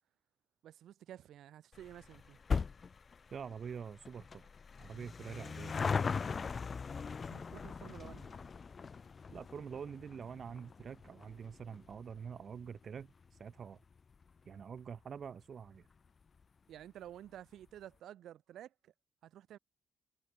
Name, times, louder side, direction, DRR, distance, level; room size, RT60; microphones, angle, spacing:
voice 1, 0.6-2.4 7.3-8.5 16.7-18.9 19.2-19.6, right 11 dB, 85° right, 3.1 m, -52 dB
sound 1, 1.7-14.5 14.8-14.9 15.7-15.8 16.0-16.1 16.4-16.5, left 5 dB, 35° left, 0.4 m, -40 dB
voice 2, 3.3-4.4 4.8-6.2 7.3-7.4 9.3-13.8 14.4-15.9, right 7 dB, 45° right, 1.6 m, -46 dB
cardioid pair, 135°, 0 cm